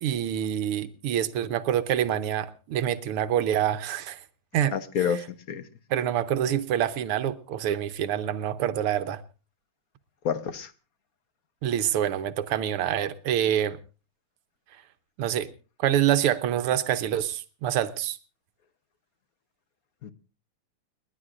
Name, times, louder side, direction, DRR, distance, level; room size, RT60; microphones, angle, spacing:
voice 1, 0.0-4.2 4.5-4.7 5.1-5.2 5.9-9.2 11.6-13.8 15.2-15.5 15.8-18.2, right 10 dB, 85° right, 1.7 m, -26 dB
voice 2, 4.7-5.6 10.2-10.7 20.0-20.1, left 7 dB, 55° left, 1.1 m, -29 dB
30.0 x 11.0 x 2.5 m
omnidirectional pair, 2.4 m